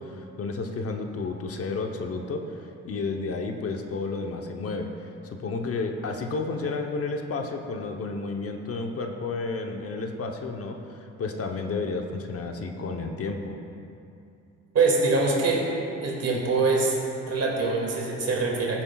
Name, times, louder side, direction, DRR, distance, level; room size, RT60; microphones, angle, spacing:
voice 1, 0.0-2.4 2.8-13.6, left 3 dB, 50° left, 3 dB, 0.9 m, -31 dB
voice 2, 14.7-15.7 16.0-17.0 17.3-18.8, right 3 dB, 55° right, -1 dB, 2.2 m, -24 dB
14.5 x 8.8 x 2.3 m, 2.7 s
cardioid pair, 90°, 30 cm